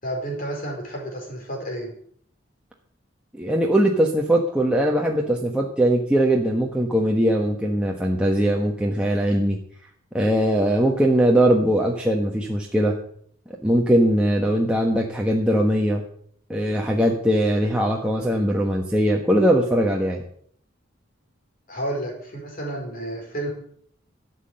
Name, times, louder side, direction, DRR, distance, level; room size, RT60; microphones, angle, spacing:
voice 1, 0.0-1.9 21.7-23.5, right 1 dB, 45° left, 1 dB, 4.8 m, -31 dB
voice 2, 3.3-9.6 10.1-12.9 13.6-16.0 16.5-20.2, right 1 dB, 5° right, -1 dB, 1.2 m, -20 dB
13.0 x 7.6 x 7.8 m, 0.63 s
head